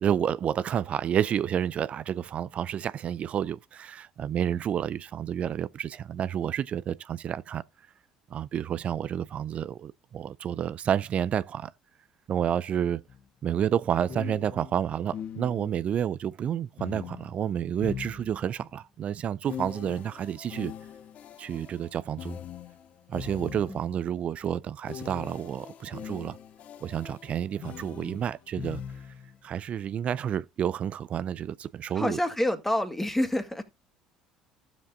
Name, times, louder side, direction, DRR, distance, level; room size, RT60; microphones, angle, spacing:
voice 1, 0.0-7.6 8.3-11.7 12.3-13.0 13.4-20.7 21.4-22.4 23.1-26.4 26.8-28.8 29.4-32.2, right 9 dB, 45° right, 0.4 m, -30 dB
sound 1, 13.1-13.2 14.1-15.9 16.8-18.7 19.5-24.0 24.9-29.4, left 9 dB, 50° left, 0.7 m, -42 dB
voice 2, 31.9-33.6, left 1 dB, 10° left, 2.2 m, -28 dB
15.0 x 7.3 x 2.5 m
hypercardioid pair, 60°, 3 cm